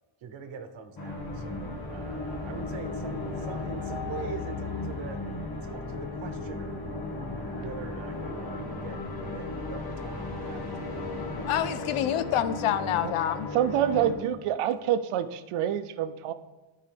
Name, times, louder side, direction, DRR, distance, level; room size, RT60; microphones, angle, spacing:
voice 1, 0.2-5.2 5.6-6.8 7.6-11.0 12.0-12.2, right 6 dB, 65° right, 6 dB, 1.0 m, -43 dB
sound 1, 1.0-14.1, left 3 dB, 50° left, 1.4 m, -36 dB
sound 2, 1.1-12.9, equal, 5° right, 0.4 m, -43 dB
voice 2, 11.5-13.5, left 11 dB, 85° left, 13 dB, 0.7 m, -27 dB
voice 3, 13.5-16.3, right 10 dB, 90° right, 11 dB, 0.7 m, -27 dB
13.5 x 4.7 x 3.4 m, 1.2 s
cardioid pair, 145°, 50 cm